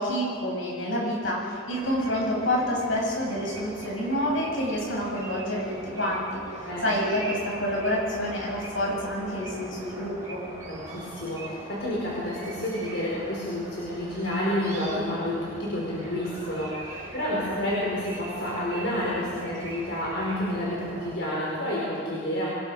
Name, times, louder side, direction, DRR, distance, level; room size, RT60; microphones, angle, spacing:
voice 1, 0.0-10.4, equal, 80° left, -2 dB, 7.6 m, -28 dB
sound 1, 1.7-21.2, right 1 dB, 15° right, 4.6 m, -41 dB
voice 2, 10.7-22.5, left 1 dB, 65° left, -6 dB, 5.3 m, -29 dB
26.0 x 21.0 x 5.1 m, 2.2 s
head